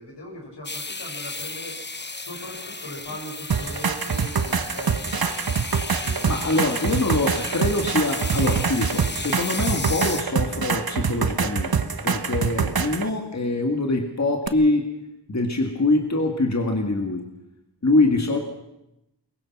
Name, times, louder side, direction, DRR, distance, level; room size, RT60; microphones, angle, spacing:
voice 1, 0.0-1.8 2.1-5.5 5.8-6.7, left 1 dB, 85° left, 0 dB, 6.3 m, -40 dB
sound 1, 0.6-10.2, left 3 dB, 25° left, 1.0 m, -34 dB
sound 2, 3.5-13.1 14.5-14.6, right 6 dB, 60° right, 1.2 m, -25 dB
voice 2, 6.2-15.0 15.3-17.3 17.8-18.4, left 2 dB, 40° left, 4 dB, 2.1 m, -24 dB
22.5 x 21.0 x 6.1 m, 0.90 s
wide cardioid pair, 60°, 40 cm